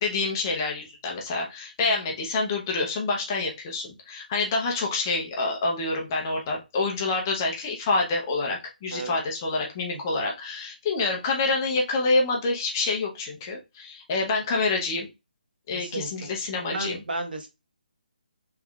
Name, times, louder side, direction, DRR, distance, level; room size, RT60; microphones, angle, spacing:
voice 1, 0.0-15.1 15.7-17.0, left 3 dB, 20° left, 0 dB, 0.7 m, -27 dB
voice 2, 15.7-16.3 16.7-17.5, right 3 dB, 70° right, 3 dB, 1.1 m, -33 dB
3.5 x 3.3 x 2.3 m, 0.24 s
hypercardioid pair, 170°, 5 cm